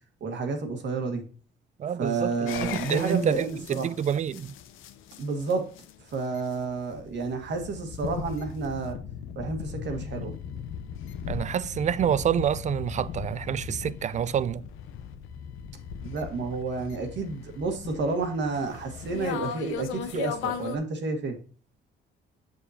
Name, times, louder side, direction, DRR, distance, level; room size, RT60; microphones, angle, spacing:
voice 1, 0.2-1.2 2.0-3.9 5.2-5.6 6.1-9.0 9.3-10.3 16.0-21.4, right 4 dB, 65° right, 1.5 m, -30 dB
voice 2, 1.8-4.5 11.3-14.6, right 9 dB, 35° right, 0.4 m, -28 dB
sound 1, 2.5-20.8, left 8 dB, 90° left, 0.7 m, -38 dB
7.1 x 6.7 x 2.8 m
cardioid pair, 90°, 20 cm